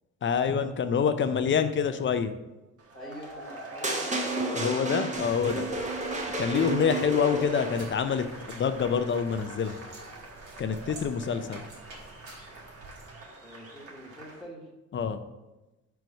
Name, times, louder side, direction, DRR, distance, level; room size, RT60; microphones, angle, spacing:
voice 1, 0.2-2.3 4.5-5.7 6.4-9.8 10.6-11.7 14.9-15.2, left 7 dB, 40° left, 10 dB, 0.5 m, -27 dB
sound 1, 2.8-14.4, right 2 dB, 50° right, 1.4 m, -45 dB
voice 2, 2.9-4.2 11.2-11.4 13.4-14.7, equal, ahead, -3 dB, 1.3 m, -46 dB
sound 2, 3.8-8.1, right 2 dB, 25° right, 1.0 m, -31 dB
sound 3, 5.1-13.1, right 2 dB, 80° right, 2.2 m, -50 dB
4.7 x 4.6 x 5.2 m, 1.0 s
cardioid pair, 90°, 30 cm